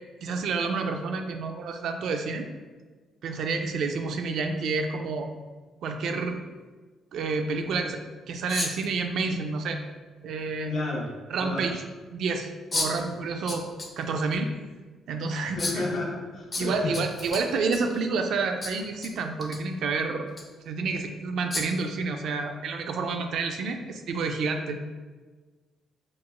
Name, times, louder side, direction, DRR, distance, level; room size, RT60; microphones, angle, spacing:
voice 1, 0.2-2.5 3.2-5.3 5.8-6.4 7.1-8.0 8.3-9.8 10.2-10.8 11.3-11.8 12.1-13.6 14.0-14.5 15.1-15.8 16.6-20.3 20.6-24.8, right 4 dB, 75° right, 5 dB, 0.3 m, -29 dB
sound 1, 8.5-8.9 10.4-10.5 12.7-13.0 13.5-13.9 14.3-14.4 15.6-15.9 16.5-18.0 18.6-19.1 19.4-19.6 20.3-20.4 21.5-21.8, left 2 dB, 35° left, 0.5 m, -32 dB
voice 2, 10.7-11.7 15.4-17.0, left 2 dB, 75° left, -3 dB, 0.8 m, -32 dB
4.7 x 2.1 x 2.4 m, 1.4 s
cardioid pair, 90°, 0 cm